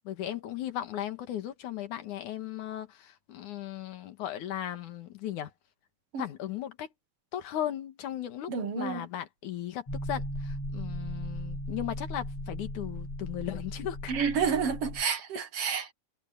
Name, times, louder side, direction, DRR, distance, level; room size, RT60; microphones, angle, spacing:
voice 1, 0.0-5.5 6.2-6.9 7.3-14.1, left 11 dB, 90° left, 3.1 m, -37 dB
voice 2, 8.5-9.1 14.1-15.9, right 6 dB, 55° right, 2.3 m, -29 dB
sound 1, 9.9-15.0, equal, 55° left, 5.4 m, -37 dB
omnidirectional pair, 3.4 m